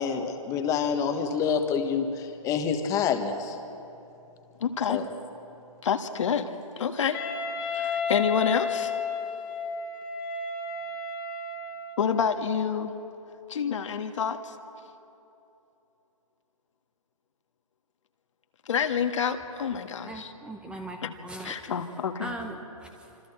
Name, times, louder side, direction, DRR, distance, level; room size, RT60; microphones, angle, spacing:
voice 1, 0.0-3.6 4.9-5.1, left 6 dB, 15° left, 6 dB, 1.4 m, -27 dB
voice 2, 4.6-5.0 5.8-7.2 7.7-8.9 12.0-13.0 13.5-14.5 18.7-20.3 21.0-21.1 21.4-22.3, left 7 dB, 55° left, 7 dB, 1.5 m, -28 dB
Wind instrument woodwind instrument, 7.1-12.1, left 5 dB, 35° left, 2.1 m, -32 dB
voice 3, 20.0-21.6 22.2-23.3, right 2 dB, 5° right, 4 dB, 1.0 m, -40 dB
27.5 x 26.0 x 4.4 m, 2.9 s
figure-of-eight pair, 140°, 19 cm